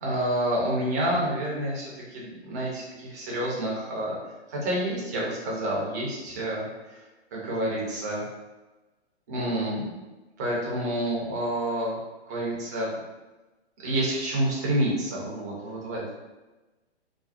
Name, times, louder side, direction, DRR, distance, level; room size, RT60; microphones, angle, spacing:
voice 1, 0.0-4.2 4.5-7.0 7.3-8.3 9.3-9.9 10.4-12.0 12.3-12.9 13.8-16.1, right 1 dB, 15° right, -5 dB, 0.3 m, -28 dB
2.5 x 2.1 x 2.3 m, 1.1 s
figure-of-eight pair, 125°, 33 cm